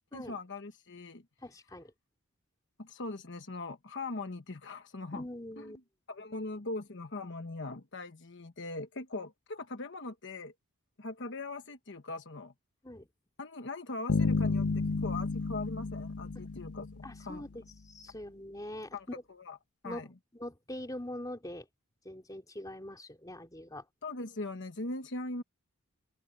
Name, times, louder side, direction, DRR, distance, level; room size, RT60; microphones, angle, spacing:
voice 1, 0.1-1.2 2.8-5.2 5.6-5.7 6.1-10.5 11.0-12.5 13.4-14.7 15.0-17.5 18.9-19.6 19.8-20.1 24.0-25.4, left 2 dB, 55° left, 1.2 m, -40 dB
voice 2, 1.4-1.9 5.1-5.8 12.8-13.1 17.0-19.0 19.8-20.0 20.4-21.7 22.0-23.8, left 1 dB, 15° left, 3.3 m, -43 dB
sound 1, 14.1-17.5, left 3 dB, 75° left, 0.7 m, -32 dB
open air
head